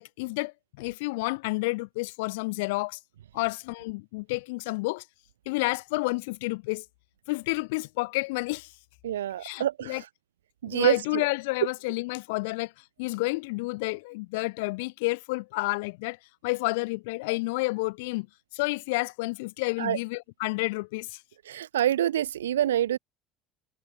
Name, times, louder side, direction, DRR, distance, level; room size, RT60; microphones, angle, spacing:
voice 1, 0.0-3.0 3.3-5.0 5.5-6.8 7.3-8.7 9.4-10.0 10.7-12.7 13.0-16.2 16.4-18.3 18.5-21.2, left 25 dB, 70° left, 5.5 m, -30 dB
voice 2, 9.0-10.0 10.6-11.2 19.8-20.0 21.5-23.0, right 11 dB, 80° right, 0.8 m, -26 dB
hypercardioid pair, 65°, 0 cm